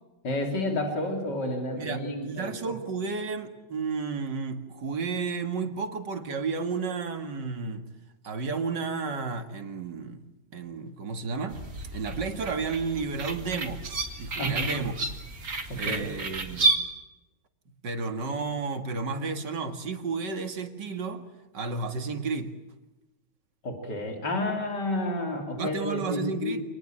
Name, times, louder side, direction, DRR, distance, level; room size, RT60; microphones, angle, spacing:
voice 1, 0.2-2.8 14.4-14.9 15.7-16.1 23.6-26.7, left 1 dB, 75° left, 3.8 m, -31 dB
voice 2, 1.7-7.8 8.2-10.2 10.5-11.6 11.9-13.8 14.2-15.0 15.8-16.7 17.8-21.2 21.5-22.5 25.6-26.6, right 4 dB, 85° right, 2.7 m, -32 dB
sound 1, 11.5-16.8, right 3 dB, 55° right, 2.8 m, -31 dB
27.0 x 20.0 x 8.9 m
omnidirectional pair, 1.8 m